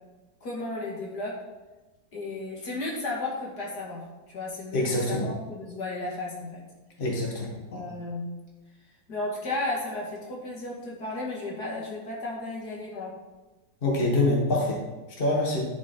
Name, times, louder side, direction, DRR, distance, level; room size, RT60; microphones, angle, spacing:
voice 1, 0.4-1.4 2.1-4.0 4.3-6.6 7.7-8.3 9.1-13.2, left 2 dB, 60° left, -3 dB, 2.5 m, -34 dB
voice 2, 4.7-5.3 7.0-7.8 13.8-14.8 15.2-15.7, left 1 dB, 30° left, -2 dB, 1.9 m, -25 dB
11.0 x 6.3 x 4.4 m, 1.2 s
omnidirectional pair, 1.9 m